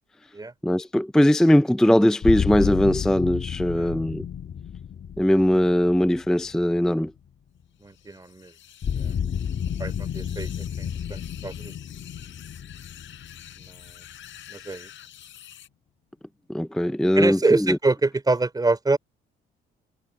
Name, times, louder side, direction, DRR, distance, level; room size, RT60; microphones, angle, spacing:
voice 1, 0.6-4.3 5.2-7.1 16.5-17.8, equal, 5° left, 0.4 m, -20 dB
sound 1, 2.2-7.2 8.8-14.5, left 8 dB, 50° left, 1.5 m, -31 dB
sound 2, 7.8-15.7, left 11 dB, 75° left, 4.3 m, -48 dB
voice 2, 7.8-8.5 9.0-9.1 9.8-11.7 13.6-13.9 14.5-14.9 17.1-19.0, right 3 dB, 20° right, 3.7 m, -26 dB
cardioid pair, 90°, 20 cm